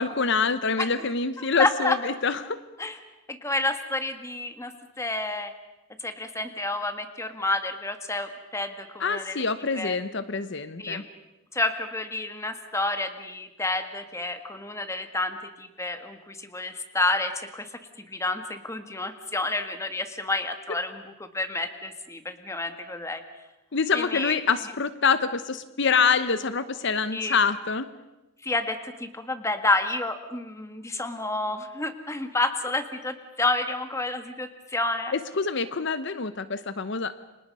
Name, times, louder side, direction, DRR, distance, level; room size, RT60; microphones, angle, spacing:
voice 1, 0.0-2.6 9.0-11.0 23.7-27.9 35.1-37.1, left 5 dB, 55° left, 12 dB, 0.9 m, -26 dB
voice 2, 1.6-2.0 2.8-3.0 3.3-4.7 5.0-5.5 6.0-9.4 9.8-10.0 10.8-11.0 11.5-17.7 18.1-21.0 21.3-23.2 23.9-24.4 27.1-27.4 28.4-35.1, left 2 dB, 15° left, 8 dB, 1.7 m, -29 dB
30.0 x 26.0 x 5.5 m, 0.99 s
head